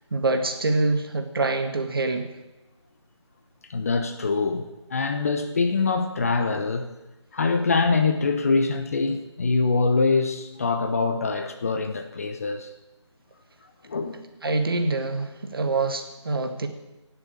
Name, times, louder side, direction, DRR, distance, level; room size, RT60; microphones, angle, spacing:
voice 1, 0.1-2.3 14.4-16.7, right 3 dB, 45° right, 6 dB, 1.8 m, -25 dB
voice 2, 3.7-6.9 7.3-12.7 13.8-14.2, left 4 dB, 30° left, 8 dB, 0.9 m, -24 dB
18.0 x 7.0 x 8.8 m, 1.0 s
figure-of-eight pair, 160°, 16 cm